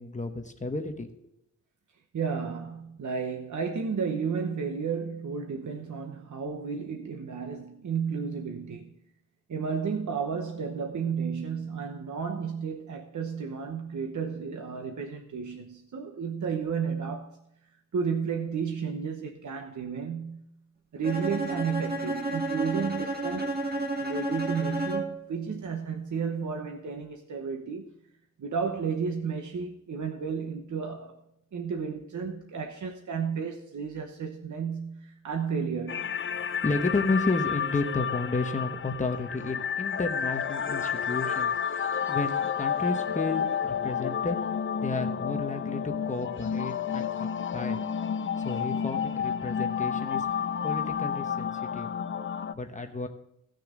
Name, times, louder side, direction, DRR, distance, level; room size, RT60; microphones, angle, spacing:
voice 1, 0.0-1.3 36.4-41.5 42.1-44.4 44.8-47.8 48.4-50.3 50.6-51.9 52.5-53.1, left 3 dB, 25° left, 1.0 m, -32 dB
voice 2, 2.1-8.9 9.5-17.4 17.9-20.4 20.9-23.5 24.0-27.9 28.4-31.2 31.5-36.1, right 6 dB, 65° right, 1.0 m, -32 dB
Bowed string instrument, 21.0-25.3, right 2 dB, 30° right, 1.7 m, -31 dB
sound 1, 35.9-52.5, left 7 dB, 40° left, 0.4 m, -30 dB
16.5 x 6.5 x 3.8 m
wide cardioid pair, 165°, 31 cm